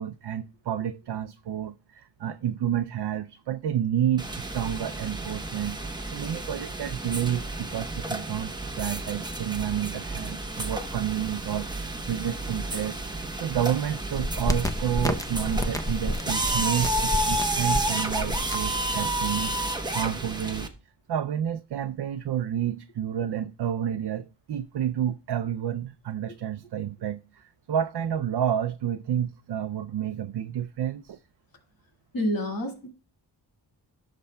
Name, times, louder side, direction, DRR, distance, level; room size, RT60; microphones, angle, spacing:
voice 1, 0.0-5.8 6.1-13.0 13.4-20.7 21.1-31.2, right 10 dB, 70° right, 0.5 m, -30 dB
sound 1, 4.2-20.7, right 1 dB, 10° right, 0.9 m, -31 dB
sound 2, 14.1-19.6, equal, 10° left, 0.6 m, -30 dB
voice 2, 32.1-32.9, equal, 55° left, 2.0 m, -28 dB
17.0 x 6.8 x 2.2 m
wide cardioid pair, 150°, 41 cm